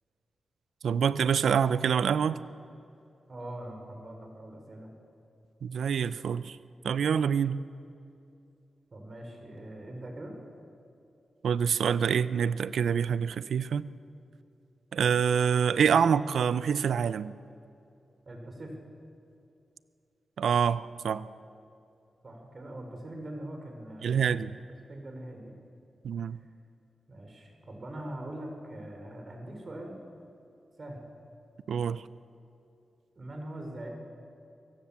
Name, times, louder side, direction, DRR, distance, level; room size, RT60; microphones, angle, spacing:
voice 1, 0.8-2.4 5.6-6.6 6.8-7.6 11.4-13.9 14.9-17.3 20.4-21.3 24.0-24.5 26.0-26.4 31.7-32.0, right 7 dB, 85° right, 16 dB, 0.5 m, -26 dB
voice 2, 3.3-4.9 8.9-10.4 18.2-18.8 22.2-24.6 24.9-25.6 26.4-26.5 27.1-30.0 30.8-31.1 33.2-33.9, right 1 dB, 45° right, 3 dB, 4.7 m, -42 dB
23.5 x 18.0 x 7.2 m, 2.7 s
cardioid pair, 60°, 0 cm